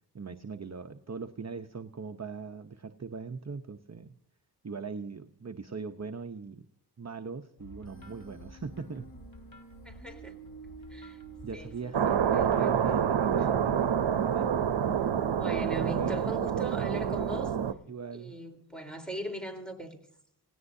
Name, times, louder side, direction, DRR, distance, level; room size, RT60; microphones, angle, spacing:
voice 1, 0.1-4.2 4.6-6.7 7.0-9.1 11.4-12.0 12.5-13.7 14.2-14.6 15.8-16.4 17.9-18.3, right 5 dB, 40° right, 0.8 m, -40 dB
sound 1, 7.6-14.0, equal, 55° left, 3.0 m, -51 dB
Human voice, 7.8-12.8, right 4 dB, 30° left, 5.5 m, -51 dB
voice 2, 9.8-10.4 10.9-11.2 11.5-12.7 15.3-17.5 18.1-20.0, right 1 dB, ahead, 3.9 m, -40 dB
sound 2, 11.9-17.7, right 8 dB, 85° right, 0.8 m, -27 dB
28.0 x 17.5 x 2.7 m
cardioid pair, 50°, 42 cm